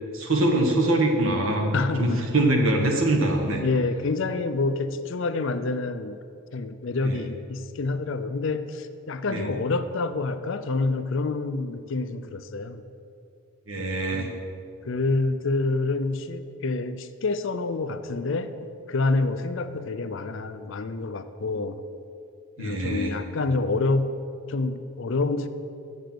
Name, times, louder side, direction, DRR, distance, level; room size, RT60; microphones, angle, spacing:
voice 1, 0.1-3.6 7.0-7.2 9.3-9.5 13.7-14.3 22.6-23.1, right 1 dB, 65° right, 2 dB, 1.4 m, -23 dB
voice 2, 1.7-2.2 3.6-6.2 6.5-12.8 13.8-14.4 14.9-18.5 18.9-21.8 22.6-24.2 24.5-25.5, left 3 dB, 55° left, 11 dB, 0.5 m, -27 dB
7.4 x 6.7 x 7.8 m, 2.5 s
head